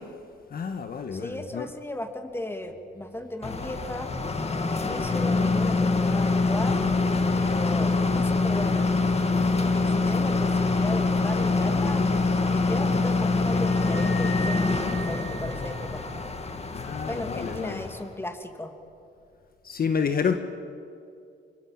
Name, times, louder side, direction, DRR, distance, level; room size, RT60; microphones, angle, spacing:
voice 1, 0.5-1.7 16.7-17.8 19.6-20.4, left 6 dB, 50° left, 7 dB, 1.6 m, -29 dB
voice 2, 1.1-4.1 4.6-6.8 7.4-8.9 9.6-12.1 12.5-16.1 16.9-18.7, left 1 dB, 10° left, 6 dB, 2.9 m, -36 dB
sound 1, 3.4-18.1, left 3 dB, 30° left, 2.1 m, -25 dB
sound 2, 13.6-16.3, right 1 dB, 80° right, 5.4 m, -39 dB
28.0 x 24.0 x 7.7 m, 2.5 s
cardioid pair, 90°, 20 cm